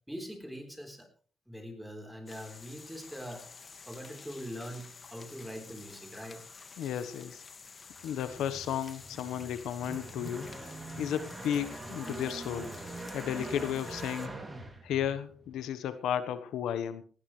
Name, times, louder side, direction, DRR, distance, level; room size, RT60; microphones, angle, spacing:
voice 1, 0.1-1.1 1.5-3.5 3.9-6.4, equal, 5° right, 4 dB, 3.9 m, -43 dB
sound 1, 2.3-14.3, left 5 dB, 35° left, 1.9 m, -50 dB
voice 2, 6.8-7.4 8.0-10.5 11.0-12.7 13.1-14.4 14.8-17.0, left 9 dB, 80° left, 12 dB, 1.2 m, -33 dB
sound 2, 8.0-15.6, right 2 dB, 20° right, 2.8 m, -43 dB
18.0 x 16.5 x 3.3 m, 0.40 s
cardioid pair, 115°, 0 cm